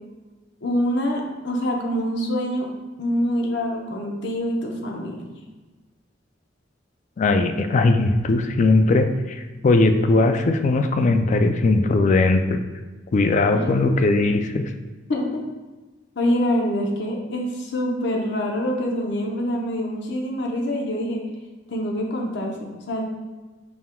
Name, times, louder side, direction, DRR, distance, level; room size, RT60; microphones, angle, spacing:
voice 1, 0.6-2.7 3.0-5.3 13.5-13.7 15.1-15.4 16.2-21.2 21.7-23.0, equal, 65° left, 1 dB, 0.8 m, -25 dB
voice 2, 7.2-12.6 13.1-14.6, left 3 dB, 40° left, 7 dB, 0.3 m, -19 dB
5.4 x 4.4 x 2.2 m, 1.2 s
head